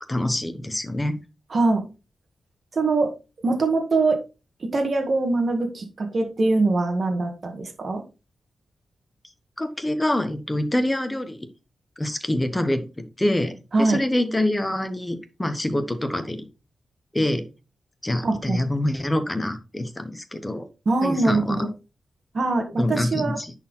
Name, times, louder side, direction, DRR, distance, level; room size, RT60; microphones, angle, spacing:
voice 1, 0.1-1.2 9.6-11.5 12.0-16.4 17.1-17.4 18.0-20.7 21.0-21.7 22.8-23.5, left 1 dB, 10° left, 8 dB, 1.1 m, -25 dB
voice 2, 1.5-1.8 2.7-3.1 3.4-4.2 4.6-8.0 13.7-14.0 18.2-18.6 20.9-21.7 22.3-23.4, right 3 dB, 40° right, 3 dB, 1.7 m, -23 dB
10.0 x 4.6 x 3.8 m, 0.30 s
wide cardioid pair, 130°, 0 cm